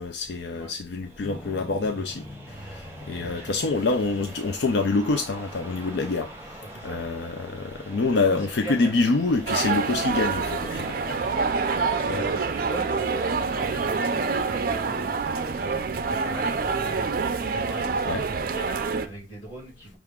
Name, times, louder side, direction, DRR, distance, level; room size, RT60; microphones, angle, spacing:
voice 1, 0.0-2.2 2.6-6.3 6.8-11.0 12.1-12.3 18.1-18.2, left 3 dB, 70° left, 0.4 m, -26 dB
sound 1, 1.0-15.8, right 1 dB, 15° right, 0.8 m, -44 dB
sound 2, 1.2-6.6 9.7-9.8, left 1 dB, 10° left, 0.5 m, -45 dB
voice 2, 6.6-7.0 8.0-8.9 11.0-11.5 11.8-15.2 15.6-17.1 17.4-20.0, right 1 dB, 30° left, 2.6 m, -39 dB
sound 3, 9.5-19.1, right 4 dB, 50° right, 0.4 m, -26 dB
5.8 x 2.4 x 3.6 m
head